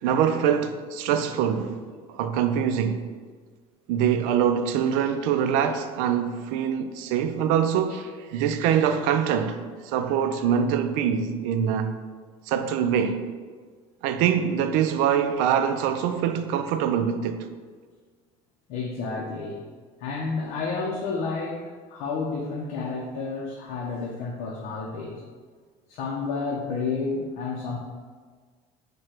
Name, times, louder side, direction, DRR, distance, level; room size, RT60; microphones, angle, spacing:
voice 1, 0.0-1.8 2.1-3.0 3.9-12.0 12.5-13.2 14.0-17.5, right 8 dB, 80° right, 0.4 m, -24 dB
voice 2, 18.7-19.6 20.0-21.6 21.9-25.2 25.9-27.8, left 4 dB, 60° left, 0.6 m, -30 dB
4.8 x 2.2 x 4.3 m
cardioid pair, 160°, 13 cm